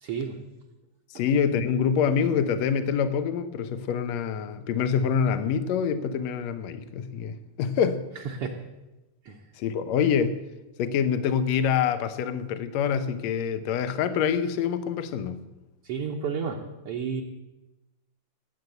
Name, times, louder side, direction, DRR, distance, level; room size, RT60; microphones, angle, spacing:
voice 1, 0.0-0.4 1.2-1.3 8.3-8.6 9.3-9.4 15.8-17.2, right 6 dB, 60° right, 0 dB, 1.8 m, -31 dB
voice 2, 1.1-8.0 9.6-10.4 10.8-15.4, left 7 dB, 70° left, 11 dB, 2.1 m, -26 dB
19.0 x 8.1 x 8.0 m, 1.0 s
omnidirectional pair, 3.4 m